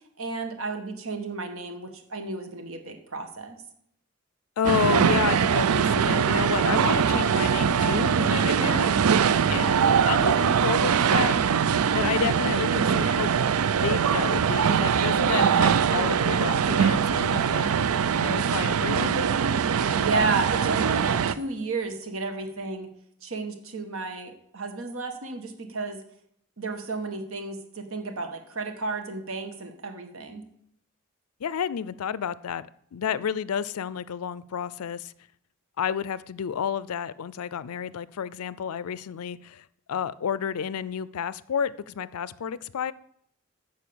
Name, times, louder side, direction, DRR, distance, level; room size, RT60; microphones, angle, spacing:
voice 1, 0.2-3.6 19.9-22.9 23.2-26.0 26.6-30.4, right 3 dB, 70° right, 1.6 m, -32 dB
voice 2, 4.6-9.0 9.5-11.4 11.9-13.5 13.8-17.6 18.2-19.3 31.4-32.6 32.9-35.1 35.8-42.9, left 7 dB, 85° left, 0.4 m, -30 dB
sound 1, 4.6-21.3, right 7 dB, 90° right, 0.5 m, -22 dB
9.4 x 6.4 x 7.0 m
head